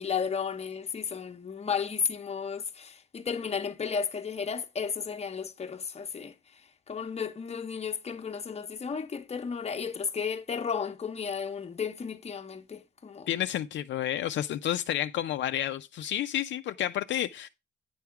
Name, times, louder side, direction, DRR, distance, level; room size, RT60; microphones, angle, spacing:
voice 1, 0.0-6.3 6.9-13.3, left 6 dB, 30° left, 0.9 m, -33 dB
voice 2, 13.3-17.5, left 11 dB, 70° left, 0.5 m, -30 dB
9.5 x 3.5 x 5.8 m
cardioid pair, 90°, 20 cm